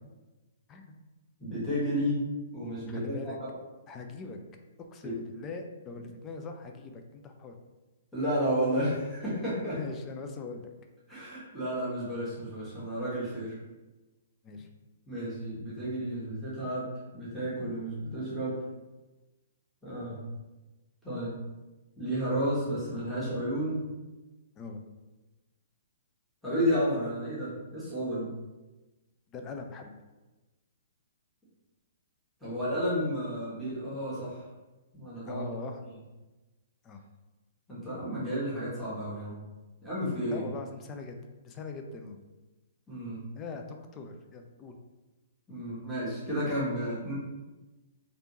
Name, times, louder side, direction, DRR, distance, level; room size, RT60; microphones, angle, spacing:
voice 1, 1.4-2.2 2.5-3.5 5.0-5.1 8.1-9.8 11.1-13.6 15.1-16.9 17.1-18.6 19.8-20.2 21.0-21.3 22.0-23.8 26.4-28.3 32.4-34.4 34.9-35.4 37.7-39.4 39.8-40.4 42.9-43.2 45.5-47.1, equal, ahead, -11 dB, 1.5 m, -32 dB
voice 2, 2.9-3.4 3.9-4.4 4.8-7.5 9.7-10.7 14.4-14.7 24.6-24.8 29.3-29.9 35.2-35.8 36.8-37.0 40.3-41.2 41.4-42.2 43.4-44.8, left 4 dB, 25° left, 4 dB, 0.4 m, -41 dB
3.3 x 2.6 x 3.0 m, 1.1 s
figure-of-eight pair, 125°, 0 cm